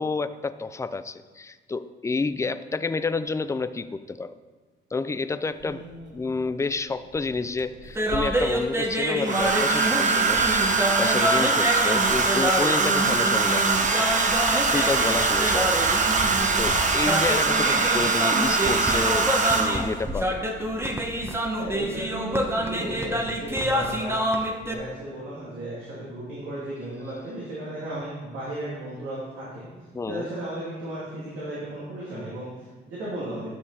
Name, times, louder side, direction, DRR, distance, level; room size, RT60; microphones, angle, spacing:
voice 1, 0.0-4.4 4.9-5.8 6.1-13.9 14.7-15.7 16.6-20.4 29.9-30.3, left 4 dB, 15° left, 12 dB, 0.4 m, -30 dB
Domestic sounds home sounds, 5.6-5.7 7.1-7.8 9.2-20.0 21.2-21.5 21.7-22.1, right 4 dB, 40° right, 0.9 m, -23 dB
voice 2, 5.6-6.1 21.5-24.2 24.7-29.7 30.1-33.6, right 1 dB, 85° right, -9 dB, 2.8 m, -35 dB
sound 1, 7.8-24.7, equal, 10° right, 1.0 m, -27 dB
11.0 x 6.4 x 4.2 m, 1.4 s
cardioid pair, 90°, 20 cm